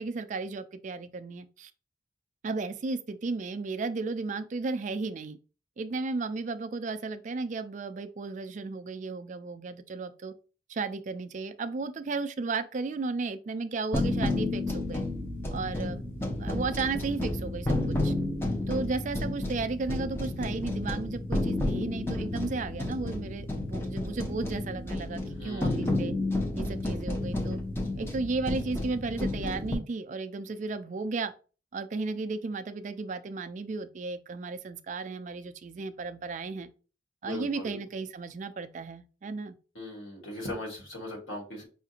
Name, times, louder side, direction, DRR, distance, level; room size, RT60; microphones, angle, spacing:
voice 1, 0.0-1.7 2.4-5.4 5.8-10.3 10.7-15.0 15.5-18.1 18.7-26.1 26.5-27.6 28.0-31.3 31.7-36.7 37.2-39.5, right 3 dB, 40° right, 0.3 m, -34 dB
sound 1, 13.9-29.7, left 2 dB, 10° left, 0.6 m, -31 dB
voice 2, 25.4-26.0 37.2-37.8 39.8-41.7, left 1 dB, 90° left, 1.7 m, -39 dB
5.6 x 2.5 x 2.8 m
head